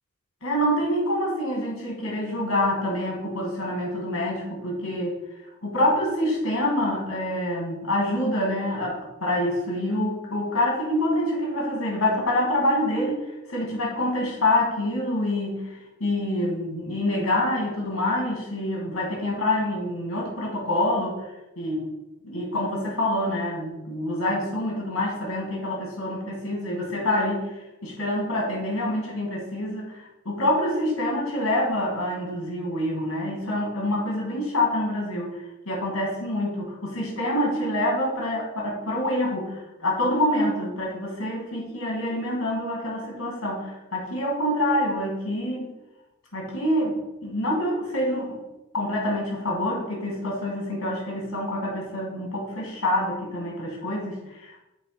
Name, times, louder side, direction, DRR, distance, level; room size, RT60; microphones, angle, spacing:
voice 1, 0.4-5.2 5.6-21.2 21.6-21.9 22.2-27.5 27.8-45.7 46.3-48.4 48.7-54.6, left 1 dB, 75° left, -2 dB, 2.3 m, -26 dB
7.4 x 3.2 x 5.1 m, 0.98 s
head